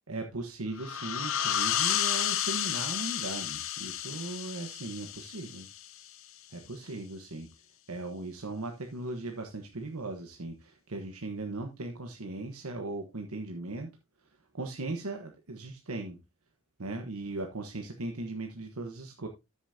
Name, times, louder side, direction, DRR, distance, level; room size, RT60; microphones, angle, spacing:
voice 1, 0.1-5.7 6.5-7.5 7.9-13.9 14.5-16.2 16.8-19.3, right 2 dB, 85° right, 4 dB, 1.3 m, -38 dB
sound 1, 0.8-6.1, left 11 dB, 65° left, 0.8 m, -32 dB
13.0 x 7.1 x 2.8 m, 0.23 s
head